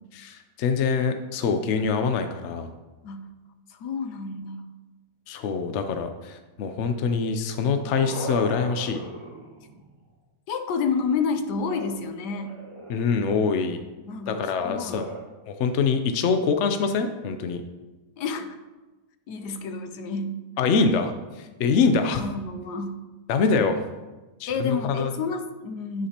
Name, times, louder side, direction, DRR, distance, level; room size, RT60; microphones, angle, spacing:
voice 1, 0.1-2.7 5.3-9.0 12.9-13.8 14.3-15.0 15.5-17.6 20.6-22.2 23.3-23.8 24.4-25.1, left 5 dB, 65° left, 7 dB, 0.7 m, -24 dB
voice 2, 3.7-4.7 10.5-12.5 14.0-15.0 18.2-18.6 19.3-20.4 22.0-23.0 24.5-26.1, left 4 dB, 80° left, 8 dB, 1.3 m, -30 dB
sound 1, 7.4-10.1 11.6-13.3 14.7-15.2, right 2 dB, 20° right, 1.2 m, -40 dB
9.8 x 7.7 x 2.9 m, 1.2 s
omnidirectional pair, 1.7 m